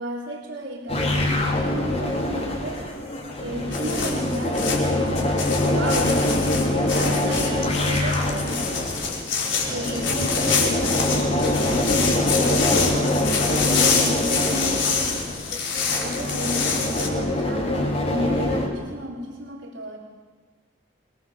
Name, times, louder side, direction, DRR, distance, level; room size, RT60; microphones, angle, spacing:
voice 1, 0.0-3.0 3.4-5.3 5.6-6.3 6.9-9.0 9.6-13.0 13.5-15.3 15.9-17.7 18.0-20.0, equal, 80° right, -1 dB, 3.8 m, -33 dB
sound 1, 0.9-18.7, left 1 dB, 35° left, 4.1 m, -24 dB
sound 2, 3.7-17.1, left 5 dB, 90° left, 5.1 m, -26 dB
27.5 x 21.0 x 7.6 m, 1.4 s
head